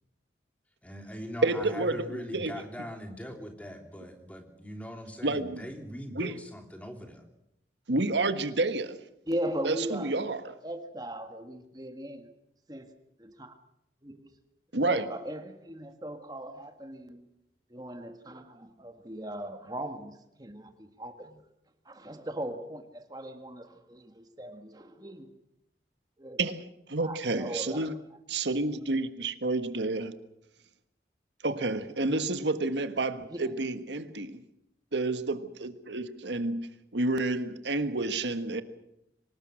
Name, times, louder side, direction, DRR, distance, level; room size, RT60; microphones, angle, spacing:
voice 1, 0.8-7.2, equal, 10° left, 4 dB, 3.2 m, -41 dB
voice 2, 1.4-2.5 5.2-5.6 6.1-6.3 7.9-9.0 9.6-10.5 14.7-15.1 26.4-26.6 26.9-28.0 28.3-30.1 31.4-34.4 34.9-36.7 36.9-38.6, right 2 dB, 85° right, 10 dB, 1.6 m, -29 dB
voice 3, 9.3-10.3 10.6-12.3 12.7-13.5 14.0-14.3 14.8-17.3 17.7-21.4 21.8-25.3 26.2-26.4 27.0-27.9 33.3-33.5, right 1 dB, 20° right, 8 dB, 1.8 m, -38 dB
25.0 x 20.0 x 6.4 m, 0.81 s
head